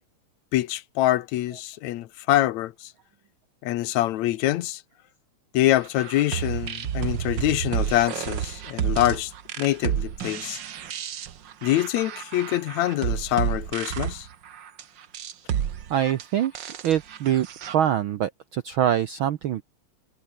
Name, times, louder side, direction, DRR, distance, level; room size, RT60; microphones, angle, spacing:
voice 1, 0.5-2.9 3.6-4.8 5.5-9.3 9.6-10.6 11.6-14.3, left 14 dB, 80° left, 2.1 m, -25 dB
sound 1, 5.8-17.7, right 9 dB, 50° right, 1.4 m, -31 dB
voice 2, 15.9-16.5 16.8-17.5 17.7-19.6, right 10 dB, 75° right, 1.2 m, -24 dB
omnidirectional pair, 3.3 m